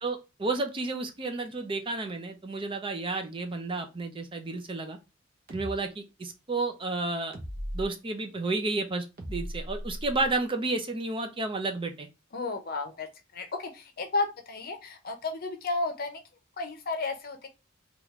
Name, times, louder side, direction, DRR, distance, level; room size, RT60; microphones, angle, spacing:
voice 1, 0.0-5.0 5.5-7.4 7.7-12.1, right 3 dB, 25° right, 5 dB, 0.5 m, -31 dB
sound 1, 5.5-5.7 7.3-7.9 9.2-10.3, equal, 50° right, 0.9 m, -37 dB
voice 2, 12.3-13.1 13.3-16.2 16.6-17.5, left 3 dB, 50° left, 6 dB, 0.7 m, -33 dB
3.5 x 2.4 x 2.9 m, 0.27 s
head